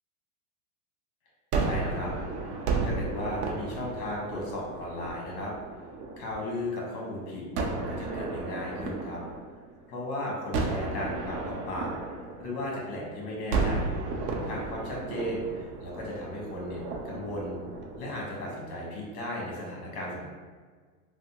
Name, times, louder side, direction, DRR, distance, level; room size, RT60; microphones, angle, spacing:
Gunshot gunfire, 1.5-6.6 7.5-10.0 10.5-13.0 13.5-18.7, right 3 dB, 70° right, 0.6 m, -33 dB
voice 1, 1.6-2.1 2.8-5.5 6.2-9.2 9.9-11.9 12.4-13.9 14.5-17.6 18.0-20.3, left 1 dB, 40° left, -3 dB, 1.1 m, -35 dB
3.4 x 2.1 x 2.8 m, 1.5 s
supercardioid pair, 155°, 47 cm